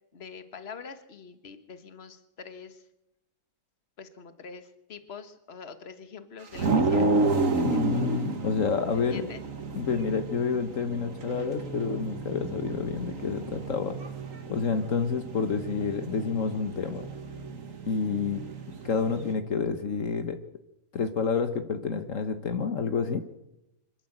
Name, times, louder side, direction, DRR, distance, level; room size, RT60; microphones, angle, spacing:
voice 1, 0.1-2.8 4.0-7.1 7.5-8.0 8.8-9.4, left 5 dB, 45° left, 10 dB, 1.7 m, -45 dB
sound 1, 6.5-19.3, right 3 dB, 65° right, 2.0 m, -31 dB
voice 2, 7.6-9.2 9.7-14.0 14.5-17.1 17.8-18.4 18.8-20.4 20.9-23.2, left 5 dB, 65° left, 8 dB, 1.6 m, -29 dB
25.0 x 13.0 x 8.1 m, 0.88 s
omnidirectional pair, 1.5 m